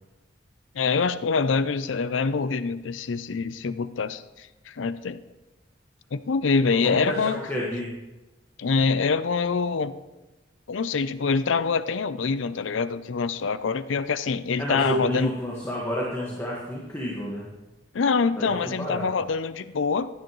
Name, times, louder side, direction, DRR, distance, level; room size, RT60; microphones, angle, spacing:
voice 1, 0.7-5.2 6.1-7.4 8.6-10.0 10.7-15.3 17.9-20.1, left 5 dB, 85° left, 14 dB, 0.5 m, -25 dB
voice 2, 6.8-7.9 14.6-17.5 18.3-19.1, equal, 15° left, -5 dB, 1.6 m, -30 dB
15.0 x 10.5 x 3.1 m, 1.1 s
head